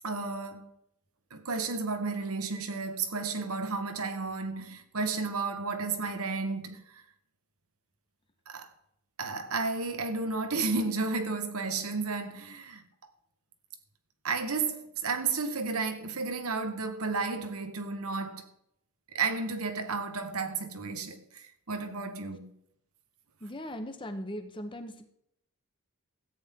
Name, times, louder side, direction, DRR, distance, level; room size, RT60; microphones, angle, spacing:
voice 1, 0.0-0.7 1.3-7.0 8.5-8.7 9.2-12.8 14.2-18.5 19.1-22.5, right 4 dB, 75° right, 1.3 m, -32 dB
voice 2, 23.4-25.1, equal, 20° left, 1.0 m, -39 dB
14.0 x 9.0 x 3.7 m
head